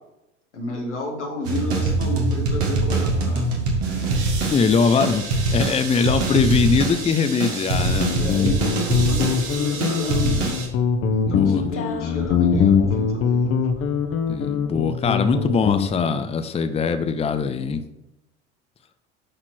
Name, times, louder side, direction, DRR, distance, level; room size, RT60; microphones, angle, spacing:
voice 1, 0.5-3.7 8.2-10.5 11.1-13.8, left 2 dB, 85° left, 1 dB, 1.8 m, -31 dB
sound 1, 1.4-10.7, right 3 dB, 70° right, 1.9 m, -24 dB
voice 2, 4.4-5.3 5.5-8.1 11.3-11.6 14.3-17.8, left 5 dB, 15° left, 9 dB, 0.6 m, -21 dB
Guitar, 7.7-16.2, left 6 dB, 40° left, 1.1 m, -22 dB
11.5 x 4.3 x 4.4 m, 0.90 s
figure-of-eight pair, 70°, 35 cm